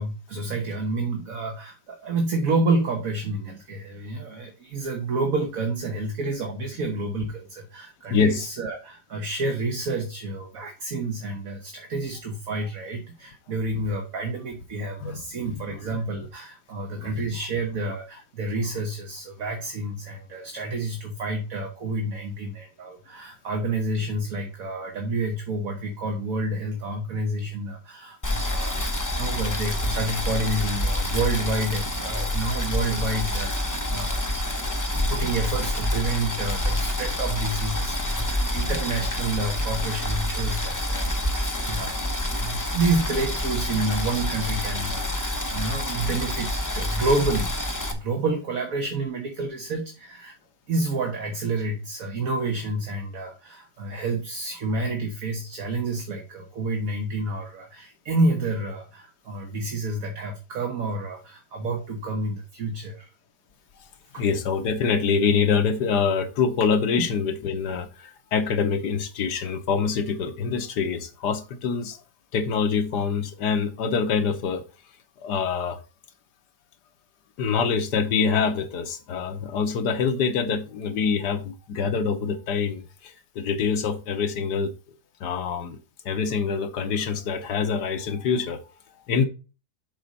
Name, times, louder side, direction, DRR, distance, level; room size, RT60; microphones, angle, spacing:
voice 1, 0.0-47.6 47.9-50.3 50.7-63.1 64.1-64.2, right 2 dB, 55° right, 1.5 m, -29 dB
voice 2, 8.1-8.5 15.0-15.2 15.5-15.8 17.0-17.2 64.2-72.0 72.3-74.6 75.2-75.8 77.4-84.7 85.2-85.8 86.0-88.6 89.1-89.3, left 5 dB, 75° left, 1.5 m, -25 dB
Boiling, 28.2-47.9, left 1 dB, 15° left, 0.7 m, -27 dB
7.3 x 4.4 x 5.3 m
omnidirectional pair, 1.8 m